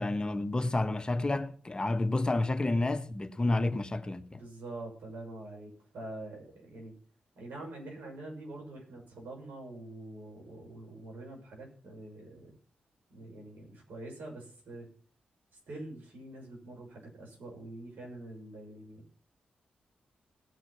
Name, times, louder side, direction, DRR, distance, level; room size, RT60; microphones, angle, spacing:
voice 1, 0.0-4.4, left 2 dB, 25° left, 1.3 m, -30 dB
voice 2, 4.3-6.9 7.3-12.5 13.1-14.9 15.7-19.0, right 2 dB, 80° right, 6.7 m, -45 dB
18.5 x 6.3 x 5.8 m
supercardioid pair, 50°, 3 cm